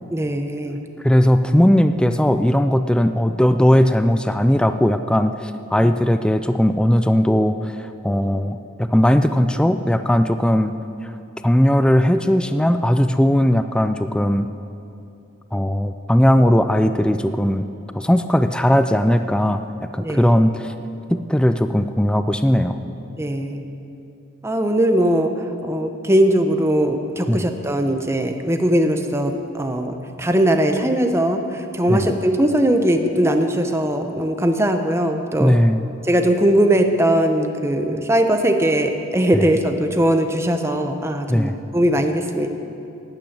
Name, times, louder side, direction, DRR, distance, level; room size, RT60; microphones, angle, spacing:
voice 1, 0.1-0.8 5.8-5.9 20.0-20.4 23.2-23.6 24.4-25.3 25.6-35.6 36.0-42.5, right 1 dB, 15° right, 6 dB, 0.8 m, -20 dB
voice 2, 1.0-10.8 11.4-14.5 15.5-17.7 17.9-19.6 19.9-20.7 21.1-22.8 27.3-27.4 31.9-32.1 35.4-35.8 39.3-39.4 41.3-41.6, equal, 5° left, 9 dB, 0.3 m, -18 dB
12.0 x 8.9 x 8.8 m, 2.7 s
head